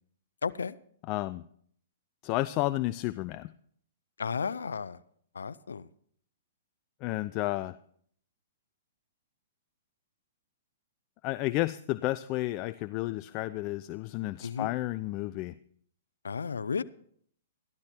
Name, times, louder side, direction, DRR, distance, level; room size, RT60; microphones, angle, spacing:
voice 1, 0.4-0.8 4.2-5.0 5.3-5.9 14.4-14.7 16.2-16.8, left 5 dB, 85° left, 15 dB, 0.5 m, -33 dB
voice 2, 1.1-1.4 2.2-3.5 7.0-7.8 11.2-15.5, left 17 dB, 40° left, 14 dB, 0.4 m, -31 dB
13.5 x 12.0 x 4.4 m, 0.62 s
hypercardioid pair, 130°, 0 cm